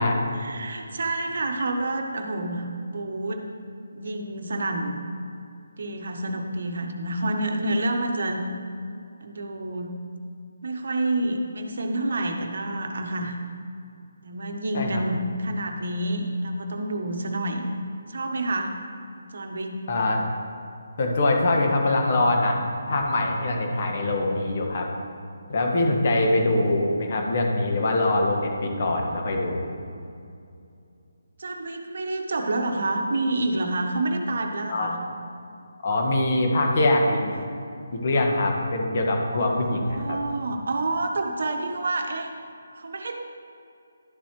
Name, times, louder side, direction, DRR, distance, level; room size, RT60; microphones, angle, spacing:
voice 1, 0.4-3.4 3.9-4.9 5.8-8.4 9.2-10.0 10.6-13.4 14.2-17.7 18.1-18.7 19.3-19.8 31.4-35.0 39.3-42.3 42.8-43.2, right 2 dB, 60° right, 4 dB, 0.9 m, -28 dB
voice 2, 19.9-20.2 21.0-24.9 25.5-29.6 34.7-34.9 35.8-37.4 37.9-40.2, left 2 dB, 45° left, 1 dB, 1.5 m, -23 dB
11.5 x 7.1 x 3.1 m, 2.5 s
figure-of-eight pair, 150°, 0 cm